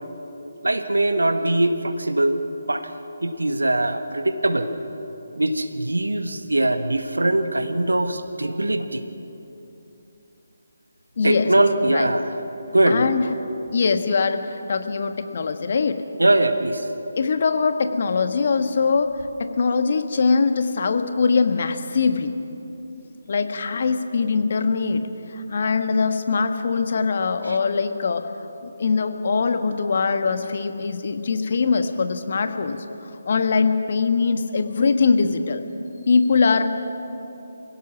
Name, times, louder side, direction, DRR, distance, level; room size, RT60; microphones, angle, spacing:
voice 1, 0.6-2.4 2.7-2.9 3.2-4.7 5.4-9.0 11.2-12.3 12.7-13.1 16.2-16.9 27.5-27.6, right 1 dB, 80° right, 9 dB, 1.5 m, -21 dB
voice 2, 11.2-11.5 11.8-12.1 12.9-13.3 13.7-16.0 17.2-22.3 23.3-25.0 25.3-28.3 28.6-32.8 33.2-35.6 36.1-36.7, left 4 dB, 50° left, 8 dB, 1.3 m, -22 dB
25.5 x 16.5 x 6.2 m, 3.0 s
figure-of-eight pair, 150°, 0 cm